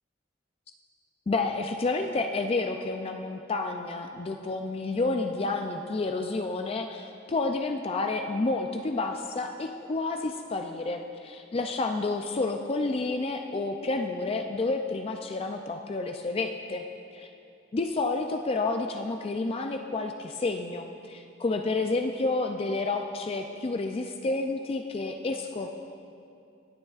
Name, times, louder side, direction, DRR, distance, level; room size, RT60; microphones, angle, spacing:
voice 1, 1.3-16.8 17.1-17.3 17.7-25.7, left 3 dB, 30° left, 5 dB, 0.3 m, -30 dB
19.5 x 7.8 x 2.4 m, 2.6 s
head